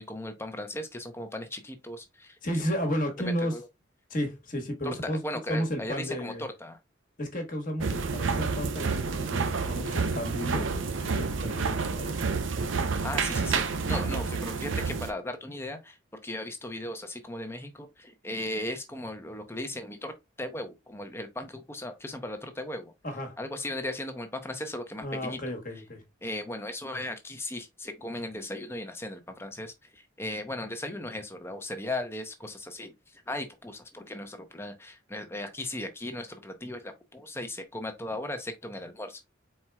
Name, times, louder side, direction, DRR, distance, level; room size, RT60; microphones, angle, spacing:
voice 1, 0.0-2.6 3.2-3.7 4.8-5.0 5.2-6.8 13.0-16.0 16.2-20.1 20.4-22.9 23.4-25.5 26.2-39.2, left 1 dB, 10° left, 0.7 m, -37 dB
voice 2, 2.4-3.6 4.1-5.2 5.5-6.4 7.2-10.7 11.0-12.2 23.0-23.4 25.0-26.0, equal, 45° left, 1.3 m, -33 dB
sound 1, 7.8-15.1, right 4 dB, 80° right, 0.6 m, -29 dB
4.4 x 4.3 x 2.3 m
head